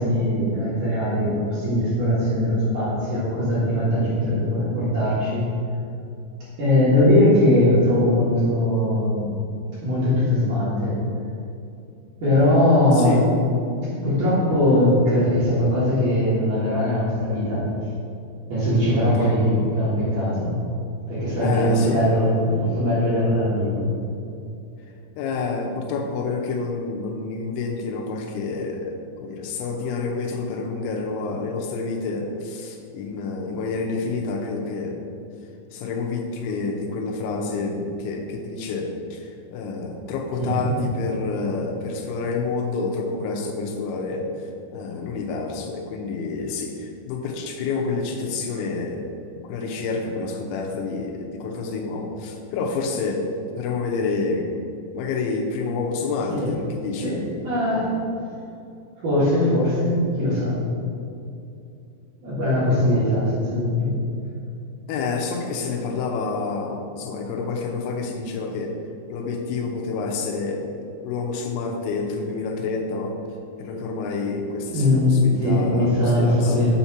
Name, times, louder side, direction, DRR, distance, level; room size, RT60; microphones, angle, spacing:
voice 1, 0.0-5.5 6.6-9.3 9.8-11.0 12.2-13.3 14.0-17.6 18.5-20.6 21.1-23.9 40.4-40.5 56.4-56.5 57.0-57.9 59.0-60.6 62.2-64.0 74.7-76.7, left 1 dB, 60° right, -11 dB, 2.5 m, -20 dB
voice 2, 12.9-13.5 19.2-19.3 21.4-22.0 25.2-35.0 35.7-44.3 44.7-49.1 49.4-53.3 53.6-54.5 54.9-57.1 64.9-68.8 69.1-70.6 71.0-73.1 73.6-76.7, left 4 dB, 85° left, 0 dB, 3.0 m, -28 dB
7.9 x 2.9 x 5.7 m, 2.6 s
omnidirectional pair, 5.3 m